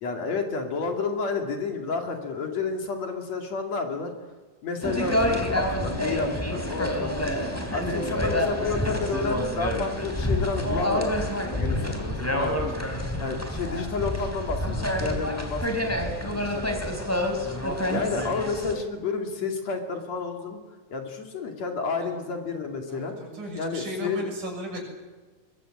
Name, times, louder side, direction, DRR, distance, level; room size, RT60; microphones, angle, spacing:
voice 1, 0.0-4.1 4.6-7.4 7.7-11.1 11.6-12.8 13.2-16.8 17.9-20.6 20.9-23.1 23.6-24.3, left 4 dB, 55° left, 4 dB, 3.6 m, -30 dB
sound 1, 4.8-18.7, left 1 dB, 5° left, 3.2 m, -28 dB
voice 2, 22.9-24.8, right 1 dB, 65° right, 1 dB, 8.2 m, -36 dB
23.0 x 22.0 x 9.0 m, 1.3 s
omnidirectional pair, 3.9 m